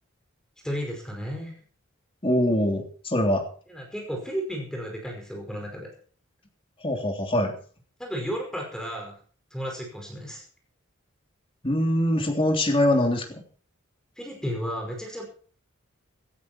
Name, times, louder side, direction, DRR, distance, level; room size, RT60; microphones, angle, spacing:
voice 1, 0.6-1.5 3.7-5.9 8.0-9.2 9.5-10.4 14.2-15.2, equal, 5° left, 1 dB, 5.3 m, -33 dB
voice 2, 2.2-3.5 6.8-7.5 11.6-13.4, left 1 dB, 25° left, 3 dB, 3.3 m, -23 dB
17.5 x 13.5 x 4.5 m, 0.43 s
head